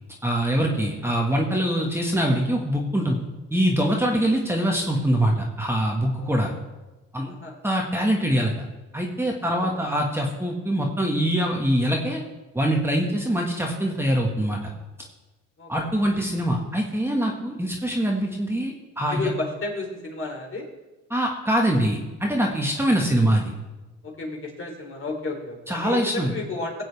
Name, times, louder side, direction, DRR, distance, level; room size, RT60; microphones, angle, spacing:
voice 1, 0.2-3.2 3.5-6.5 7.1-7.3 7.6-8.5 8.9-12.2 12.5-14.7 15.7-19.2 21.1-23.5 25.7-26.3, right 1 dB, 10° right, 0 dB, 1.6 m, -23 dB
voice 2, 6.2-6.5 7.3-7.5 9.4-9.8 15.6-15.9 19.1-20.7 24.0-26.8, left 2 dB, 45° left, 0 dB, 3.3 m, -32 dB
18.5 x 7.8 x 3.5 m, 1.1 s
cardioid pair, 90°, 30 cm